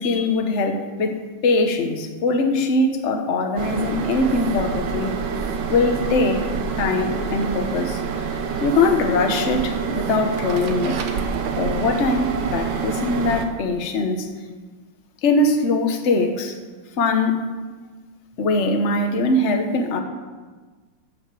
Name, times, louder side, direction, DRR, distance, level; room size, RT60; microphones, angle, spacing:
voice 1, 0.0-5.2 5.7-6.5 6.8-8.0 8.6-11.1 11.6-14.3 15.2-16.5 17.0-17.4 18.4-20.0, left 2 dB, 45° left, 5 dB, 1.1 m, -21 dB
sound 1, 3.6-13.5, right 6 dB, 60° right, 1.4 m, -27 dB
11.0 x 6.5 x 7.6 m, 1.4 s
omnidirectional pair, 2.4 m